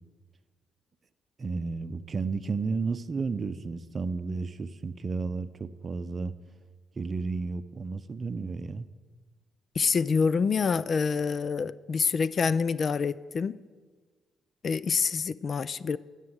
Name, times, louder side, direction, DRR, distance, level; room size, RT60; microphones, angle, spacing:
voice 1, 1.4-6.3 7.0-8.9, right 4 dB, 40° right, 13 dB, 0.7 m, -32 dB
voice 2, 9.8-13.6 14.6-16.0, left 5 dB, 45° left, 18 dB, 0.4 m, -26 dB
13.5 x 8.3 x 7.9 m, 1.5 s
cardioid pair, 90°, 0 cm